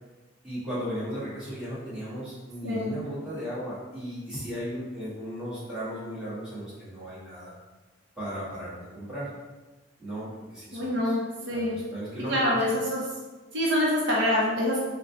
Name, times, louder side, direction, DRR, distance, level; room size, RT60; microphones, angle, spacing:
voice 1, 0.4-7.5 8.2-9.3 10.0-11.1 11.5-12.6, equal, 5° right, -11 dB, 1.4 m, -36 dB
voice 2, 2.6-3.0 10.7-11.8 12.3-13.0 13.5-14.8, left 1 dB, 60° right, -4 dB, 0.7 m, -26 dB
3.8 x 2.2 x 4.1 m, 1.2 s
head